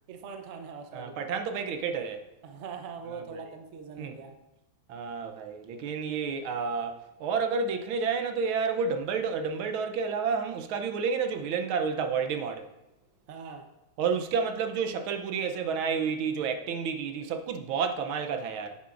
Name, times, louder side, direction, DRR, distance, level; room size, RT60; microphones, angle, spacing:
voice 1, 0.1-1.1 2.4-4.3 13.3-13.7, right 5 dB, 50° right, 0.9 m, -42 dB
voice 2, 0.9-2.2 4.0-4.2 4.9-12.7 14.0-18.8, right 5 dB, 85° right, 1.6 m, -30 dB
9.6 x 9.5 x 2.5 m
omnidirectional pair, 2.2 m